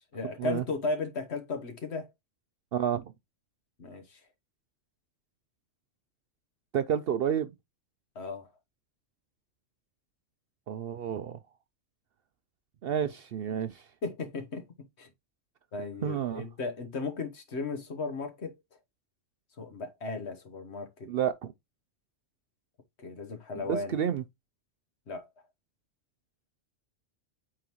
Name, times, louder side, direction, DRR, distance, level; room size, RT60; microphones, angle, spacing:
voice 1, 0.1-2.1 3.8-4.2 8.1-8.5 14.0-15.1 15.7-18.5 19.6-21.1 23.0-24.0 25.1-25.3, left 3 dB, 60° left, 1.4 m, -36 dB
voice 2, 2.7-3.1 6.7-7.5 10.7-11.4 12.8-13.8 16.0-16.4 21.1-21.5 23.7-24.2, right 9 dB, 65° right, 0.6 m, -30 dB
8.7 x 3.8 x 3.0 m
omnidirectional pair, 1.3 m